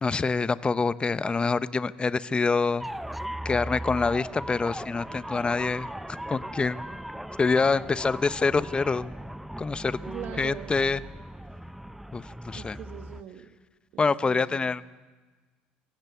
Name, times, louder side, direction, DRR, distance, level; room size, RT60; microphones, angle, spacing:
voice 1, 0.0-2.9 3.4-5.9 6.3-6.9 7.4-9.1 9.6-10.0 10.4-11.0 12.1-12.8 14.0-14.9, left 4 dB, 25° left, 15 dB, 0.9 m, -26 dB
sound 1, 2.8-13.2, right 1 dB, 5° right, 0.7 m, -38 dB
voice 2, 10.0-10.8 12.5-13.5 13.9-14.9, right 10 dB, 60° right, 7 dB, 1.5 m, -41 dB
25.0 x 16.0 x 8.4 m, 1.3 s
hypercardioid pair, 70°, 4 cm